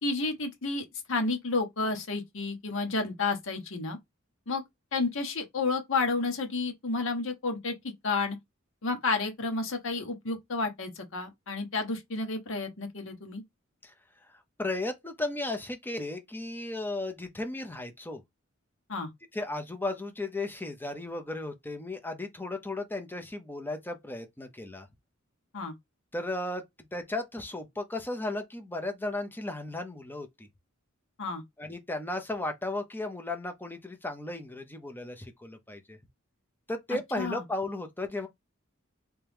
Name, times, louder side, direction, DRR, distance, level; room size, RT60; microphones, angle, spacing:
voice 1, 0.0-4.0 4.5-4.6 4.9-8.4 8.8-13.4 18.9-19.1 25.5-25.7 31.2-31.4 37.2-37.4, left 3 dB, 65° left, 1.1 m, -31 dB
voice 2, 14.6-18.2 19.3-24.9 26.1-26.6 26.9-30.5 31.6-36.0 36.7-38.3, left 2 dB, 10° left, 0.7 m, -35 dB
3.4 x 2.9 x 3.5 m
head